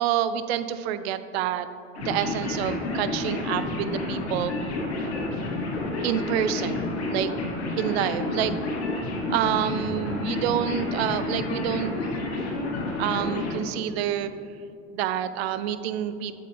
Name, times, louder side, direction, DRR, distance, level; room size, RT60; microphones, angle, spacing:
voice 1, 0.0-1.7 2.0-4.5 6.0-7.3 7.8-8.6 9.3-12.1 13.0-14.3 14.9-16.4, right 10 dB, 75° right, 12 dB, 0.5 m, -28 dB
sound 1, 1.9-13.5, left 2 dB, 85° left, 1.3 m, -30 dB
7.6 x 5.1 x 3.4 m, 2.6 s
hypercardioid pair, 85°, 32 cm